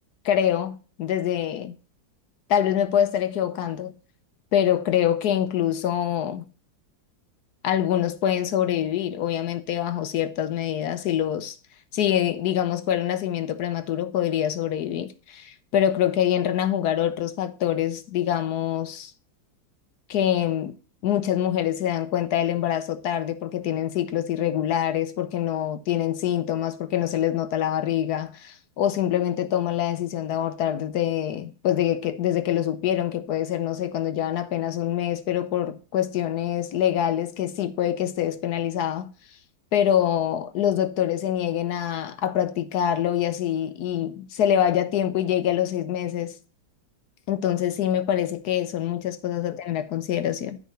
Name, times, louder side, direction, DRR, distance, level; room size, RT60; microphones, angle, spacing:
voice 1, 0.2-1.8 2.5-3.9 4.5-6.5 7.6-11.6 11.9-19.1 20.1-20.7 21.0-39.1 39.7-46.3 47.3-50.6, left 10 dB, 65° left, 1.1 m, -25 dB
9.6 x 3.8 x 6.7 m
omnidirectional pair, 2.1 m